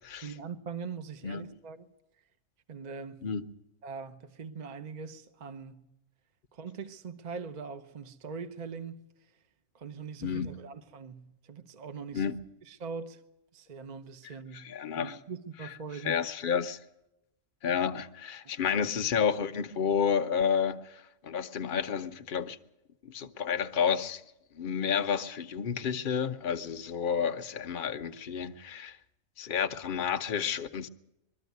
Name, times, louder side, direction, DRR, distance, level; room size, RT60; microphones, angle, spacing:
voice 1, 0.2-1.9 2.7-3.2 3.8-5.8 6.5-9.0 9.7-12.3 12.7-13.2 13.5-14.7 15.0-16.2, right 5 dB, 35° right, 0.9 m, -42 dB
voice 2, 10.2-10.6 12.1-12.4 14.5-15.1 15.6-15.7 16.0-16.8 17.6-22.6 23.0-24.2 24.5-29.0 29.4-30.9, left 7 dB, 45° left, 0.9 m, -30 dB
21.0 x 13.5 x 9.3 m
omnidirectional pair, 1.4 m